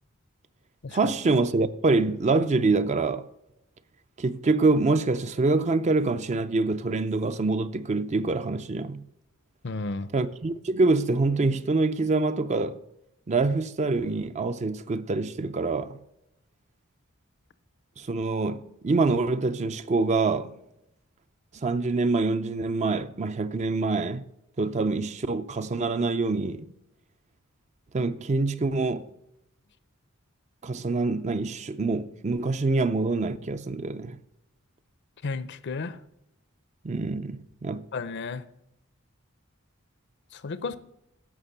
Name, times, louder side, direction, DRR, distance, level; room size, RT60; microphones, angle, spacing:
voice 1, 0.9-3.3 4.2-9.1 10.1-12.8 13.3-16.0 18.0-20.5 21.6-24.2 24.6-26.7 27.9-29.1 30.6-34.2 36.8-37.8, right 3 dB, 35° right, 0.5 m, -25 dB
voice 2, 9.6-10.1 35.2-36.0 37.9-38.4 40.3-40.8, left 3 dB, 55° left, 0.6 m, -33 dB
11.0 x 6.6 x 6.6 m
head